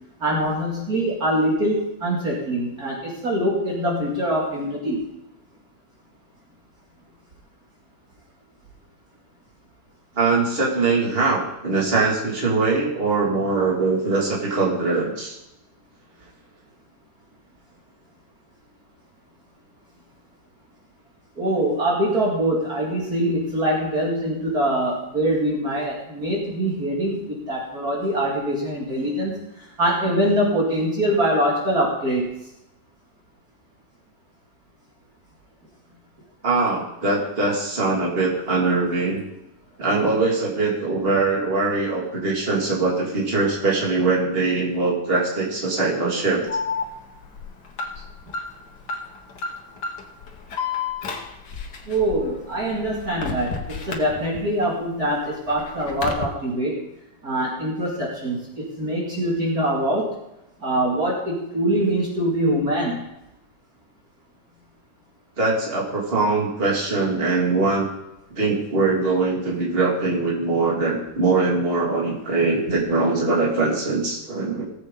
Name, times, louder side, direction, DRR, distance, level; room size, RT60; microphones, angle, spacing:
voice 1, 0.2-5.0 21.4-29.3 29.8-32.2 51.9-56.8 57.2-60.1 60.6-63.0 72.7-72.8, right 1 dB, 50° right, -3 dB, 2.7 m, -23 dB
voice 2, 10.2-15.4 36.4-39.2 39.8-46.5 65.4-67.9 68.3-74.6, right 3 dB, 30° right, -3 dB, 2.7 m, -22 dB
Alarm, 46.5-54.6 55.0-56.2, left 5 dB, 60° left, 1.9 m, -32 dB
18.5 x 7.9 x 3.9 m, 0.86 s
omnidirectional pair, 2.1 m